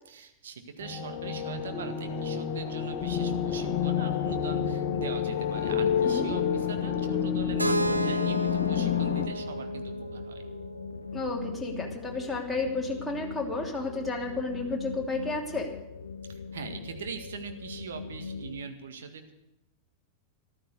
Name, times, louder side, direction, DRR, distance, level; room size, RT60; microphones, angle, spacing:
voice 1, 0.1-10.4 16.3-19.3, right 6 dB, 65° right, 6 dB, 1.8 m, -42 dB
sound 1, 0.8-9.3, left 8 dB, 45° left, 1.4 m, -29 dB
sound 2, 3.0-18.6, left 5 dB, 75° left, 0.6 m, -41 dB
Keyboard (musical), 7.6-11.5, right 2 dB, 85° right, 0.8 m, -33 dB
voice 2, 11.1-15.7, left 3 dB, 5° left, -2 dB, 3.0 m, -32 dB
14.0 x 12.5 x 6.7 m, 0.90 s
figure-of-eight pair, 90°, 0 cm